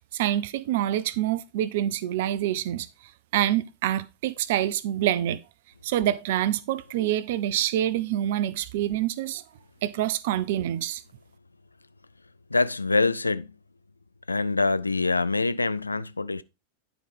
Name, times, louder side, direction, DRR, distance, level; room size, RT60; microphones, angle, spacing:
voice 1, 0.1-2.9 3.3-5.4 5.8-9.4 9.8-11.0, right 12 dB, 55° right, 0.5 m, -26 dB
voice 2, 12.5-13.5 14.3-16.4, left 3 dB, 80° left, 0.3 m, -25 dB
10.0 x 4.9 x 3.5 m
figure-of-eight pair, 90°, 0 cm